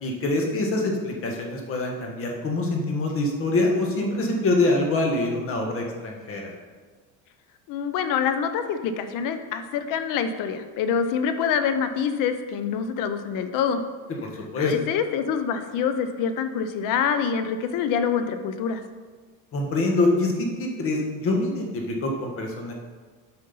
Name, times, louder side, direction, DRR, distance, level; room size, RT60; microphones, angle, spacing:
voice 1, 0.0-6.5 14.2-14.7 19.5-22.7, left 2 dB, 35° left, 1 dB, 1.6 m, -25 dB
voice 2, 7.7-13.8 14.6-18.8, left 7 dB, 60° left, 9 dB, 0.7 m, -26 dB
7.8 x 5.3 x 5.5 m, 1.4 s
cardioid pair, 145°, 36 cm